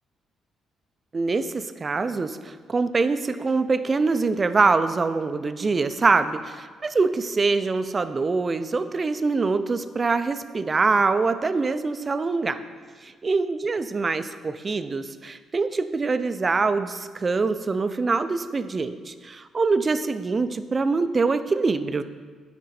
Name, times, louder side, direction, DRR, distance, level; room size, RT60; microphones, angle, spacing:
voice 1, 1.1-12.6 13.0-22.0, right 4 dB, 30° right, 11 dB, 0.4 m, -24 dB
10.0 x 4.3 x 4.2 m, 1.5 s
cardioid pair, 90°, 0 cm